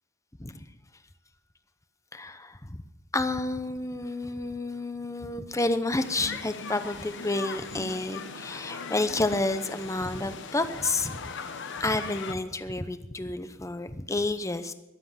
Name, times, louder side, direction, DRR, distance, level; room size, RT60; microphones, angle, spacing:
voice 1, 2.1-2.8 3.1-11.2 11.8-14.7, left 2 dB, 15° left, 10 dB, 0.8 m, -30 dB
sound 1, 6.0-12.3, left 5 dB, 60° left, 1.0 m, -39 dB
sound 2, 7.4-11.9, right 3 dB, 55° right, 1.5 m, -53 dB
21.5 x 7.8 x 5.8 m, 1.0 s
head